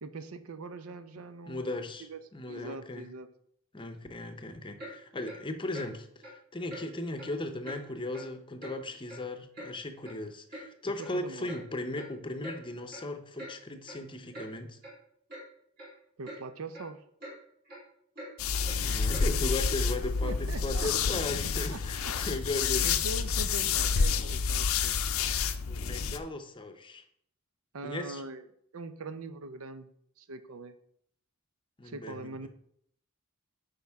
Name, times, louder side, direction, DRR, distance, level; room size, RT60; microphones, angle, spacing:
voice 1, 0.0-2.2 2.5-3.3 11.0-11.5 16.2-17.0 20.2-21.2 21.7-22.1 22.8-25.0 27.7-28.4 28.7-29.9 30.2-30.7 31.8-32.5, right 3 dB, 80° right, 11 dB, 0.7 m, -42 dB
voice 2, 1.2-3.1 3.7-6.1 6.5-14.8 18.8-22.8 25.7-27.0 27.8-28.2 31.8-32.5, left 2 dB, 25° left, 8 dB, 0.7 m, -37 dB
Clock, 4.8-4.9 5.2-5.4 5.7-5.9 6.2-6.4 6.7-6.8 7.2-7.3 7.6-7.8 8.1-8.3 8.6-8.7 9.1-9.7 10.0-10.1 10.5-10.7 11.0-11.1 11.5-11.6 12.0-12.1 12.4-12.6 12.9-13.1 13.4-13.5 13.9-14.0 14.3-14.5 14.8-14.9 15.3-15.4 15.8-15.9 16.2-16.4 16.7-16.9 17.2-17.4 17.7-17.8 18.1-18.3 18.6-18.8 19.1-19.3 19.6-19.8, equal, 45° right, 2.9 m, -44 dB
sound 1, 18.4-26.2, left 6 dB, 75° left, 0.5 m, -29 dB
8.7 x 5.3 x 3.5 m, 0.67 s
head